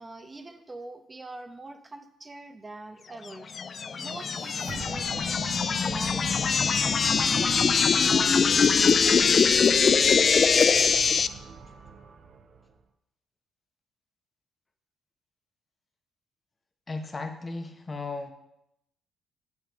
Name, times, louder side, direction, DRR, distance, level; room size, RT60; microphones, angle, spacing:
voice 1, 0.0-3.5 4.0-10.0, right 2 dB, 25° right, 8 dB, 0.9 m, -44 dB
sound 1, 3.5-11.3, left 5 dB, 50° left, 0.3 m, -22 dB
sound 2, 3.7-12.8, right 5 dB, 55° right, 0.8 m, -43 dB
voice 2, 16.9-18.3, left 3 dB, 35° left, 6 dB, 1.3 m, -36 dB
7.3 x 6.1 x 5.2 m, 0.83 s
hypercardioid pair, 50°, 0 cm